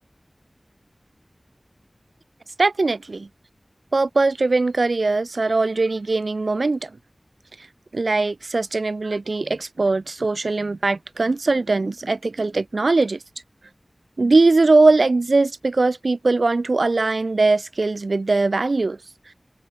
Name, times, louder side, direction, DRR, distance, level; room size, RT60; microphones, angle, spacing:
voice 1, 2.6-3.3 3.9-6.9 7.9-13.2 14.2-19.0, right 3 dB, 75° right, 0.8 m, -20 dB
wide cardioid pair, 45°, 0 cm